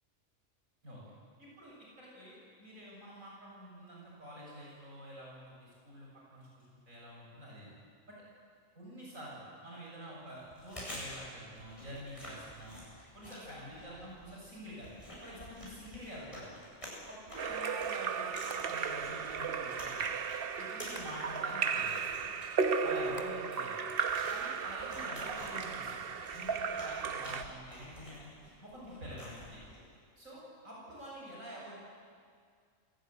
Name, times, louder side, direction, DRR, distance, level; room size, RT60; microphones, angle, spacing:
voice 1, 1.4-7.7 8.1-8.2 8.8-12.8 13.1-14.9 15.2-16.5 17.1-20.0 20.6-22.2 22.8-23.8 24.3-26.0 26.3-28.2 28.6-29.6 30.2-31.8, equal, 70° right, -5 dB, 7.7 m, -47 dB
Chewing mastication, 10.4-29.9, equal, 25° left, 8.0 m, -50 dB
sound 1, 15.2-15.6 16.8-17.1 18.5-19.0 20.9-21.4 23.2-23.7 23.9-24.9, right 2 dB, 30° right, 1.9 m, -53 dB
Splash splatter / Drip / Trickle dribble, 17.4-27.4, right 5 dB, 50° right, 1.0 m, -35 dB
27.5 x 19.0 x 9.5 m, 2.1 s
omnidirectional pair, 1.4 m